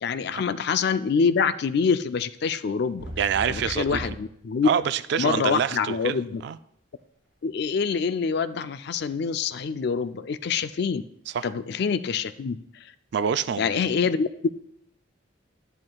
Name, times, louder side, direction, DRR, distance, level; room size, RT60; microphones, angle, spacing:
voice 1, 0.0-3.0 3.5-4.7 5.2-6.4 7.4-11.0 11.4-12.6 13.6-14.5, left 5 dB, 55° left, 13 dB, 0.4 m, -25 dB
sound 1, 3.0-4.3 5.9-6.5, equal, 5° right, 3.0 m, -37 dB
voice 2, 3.2-4.0 4.6-6.6 11.3-11.5 13.1-13.9, right 7 dB, 60° right, 14 dB, 0.3 m, -26 dB
11.0 x 10.5 x 2.3 m, 0.73 s
head